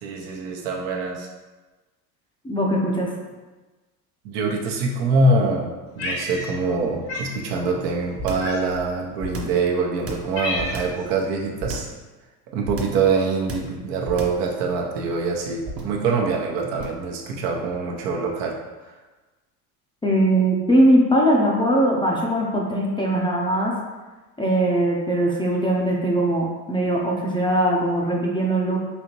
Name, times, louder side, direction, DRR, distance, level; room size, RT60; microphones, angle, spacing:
voice 1, 0.0-1.3 4.2-11.9 12.5-18.6, right 3 dB, 70° right, 0 dB, 0.9 m, -24 dB
voice 2, 2.4-3.1 20.0-23.7 24.4-28.8, right 1 dB, 10° left, -3 dB, 0.5 m, -20 dB
Cat, 6.0-6.8 7.1-7.3 8.4-8.9 9.6-9.7 10.0-11.0, left 1 dB, 90° left, 1.4 m, -30 dB
sound 1, 8.2-8.6 9.2-9.6 10.1-11.0 11.6-12.0 12.7-13.1 13.5-13.8 14.1-14.5 15.6-16.0 16.8-17.1, right 2 dB, 30° right, 0.7 m, -32 dB
4.1 x 2.8 x 3.0 m, 1.2 s
hypercardioid pair, 80°, 49 cm